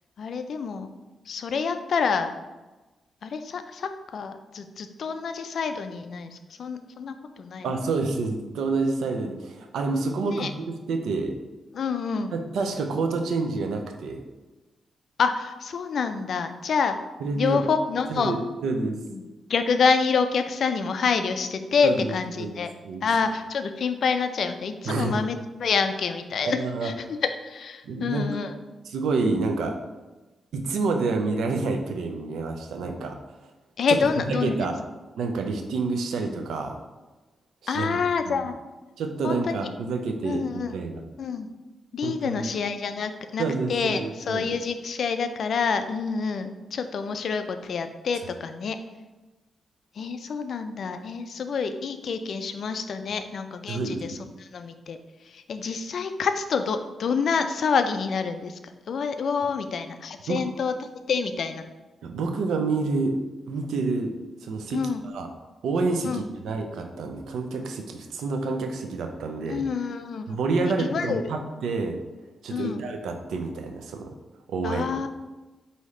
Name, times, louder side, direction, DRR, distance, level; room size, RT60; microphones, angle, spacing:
voice 1, 0.2-0.9 1.3-2.3 3.2-7.7 10.2-10.5 11.7-12.3 15.2-17.0 17.4-18.4 19.1-22.7 23.0-28.6 33.8-34.5 37.7-38.6 39.2-39.6 40.2-40.8 41.2-41.5 41.9-48.8 50.0-55.0 55.3-61.6 64.7-65.0 66.0-66.2 69.5-70.4 70.8-71.3 72.5-72.8 74.6-75.1, left 5 dB, 65° left, 8 dB, 0.3 m, -27 dB
voice 2, 7.6-11.3 12.3-14.2 17.2-17.6 18.1-18.4 18.6-19.0 21.8-22.6 22.8-23.0 24.9-25.2 26.4-26.9 27.8-28.3 28.9-29.7 30.5-33.2 33.9-34.0 34.3-34.8 35.2-36.7 37.6-37.9 38.3-38.4 39.0-41.0 42.0-42.5 43.4-44.4 53.7-54.2 60.3-60.4 62.0-63.2 63.5-64.1 64.4-65.3 65.6-69.6 70.3-72.0 72.4-74.1 74.5-75.0, right 3 dB, 90° right, 4 dB, 0.5 m, -28 dB
4.9 x 2.7 x 3.1 m, 1.1 s
cardioid pair, 85°, 0 cm